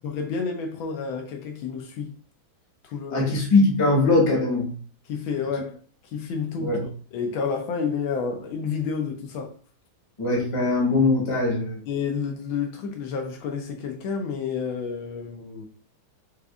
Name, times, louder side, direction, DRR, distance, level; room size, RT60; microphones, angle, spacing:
voice 1, 0.0-2.2 2.8-3.3 5.1-6.8 7.1-9.5 11.9-15.7, left 6 dB, 75° left, 1.3 m, -30 dB
voice 2, 3.1-4.7 6.6-6.8 10.2-11.8, left 2 dB, 25° left, 0.7 m, -21 dB
4.8 x 2.5 x 2.3 m
omnidirectional pair, 2.3 m